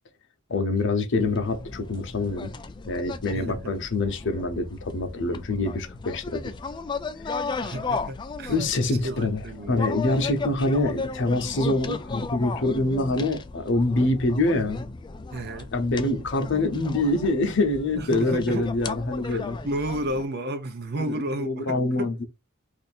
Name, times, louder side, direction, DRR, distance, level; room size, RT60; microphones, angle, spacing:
voice 1, 0.5-2.5 2.9-6.4 7.2-7.4 8.5-9.4 9.7-14.9 15.7-19.6 21.1-22.2, left 2 dB, 60° left, 0.7 m, -25 dB
sound 1, 1.2-20.3, left 4 dB, 20° left, 0.3 m, -36 dB
voice 2, 3.3-3.8 7.6-8.5 8.8-9.9 15.3-15.7 18.0-18.7 19.2-19.4 19.6-22.1, right 1 dB, 50° right, 0.6 m, -32 dB
2.6 x 2.5 x 4.1 m
head